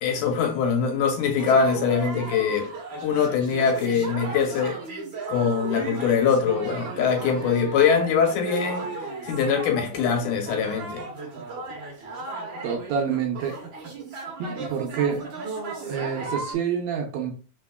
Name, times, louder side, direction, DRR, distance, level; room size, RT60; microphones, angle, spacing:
voice 1, 0.0-2.7 3.0-4.8 5.3-8.9 9.2-11.0, left 6 dB, 80° left, 2.4 m, -23 dB
sound 1, 1.4-16.5, right 3 dB, 55° right, 1.4 m, -35 dB
voice 2, 12.6-13.6 14.4-15.3 15.9-17.3, right 7 dB, 80° right, 1.7 m, -27 dB
4.2 x 3.7 x 2.2 m
omnidirectional pair, 3.5 m